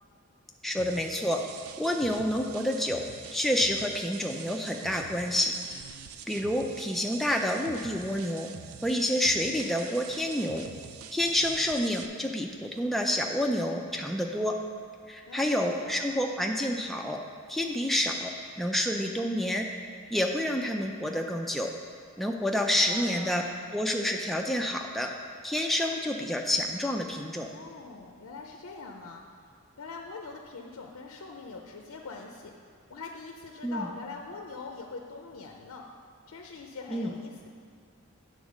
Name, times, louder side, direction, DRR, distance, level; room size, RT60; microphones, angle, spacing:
voice 1, 0.6-1.4 1.8-3.0 3.3-5.5 6.3-8.5 8.8-10.6 11.1-14.6 15.1-17.2 17.5-18.3 18.6-19.7 20.1-21.7 22.2-23.4 23.7-25.1 25.4-27.5 33.6-33.9 36.9-37.1, left 1 dB, ahead, 1 dB, 0.4 m, -28 dB
sound 1, 0.8-12.1, right 7 dB, 90° right, 0.4 m, -46 dB
voice 2, 15.3-15.9 22.7-23.4 27.5-29.2 29.8-32.5 32.9-35.9 36.3-37.5, left 4 dB, 85° left, 2 dB, 0.5 m, -43 dB
8.3 x 3.9 x 6.1 m, 2.1 s
head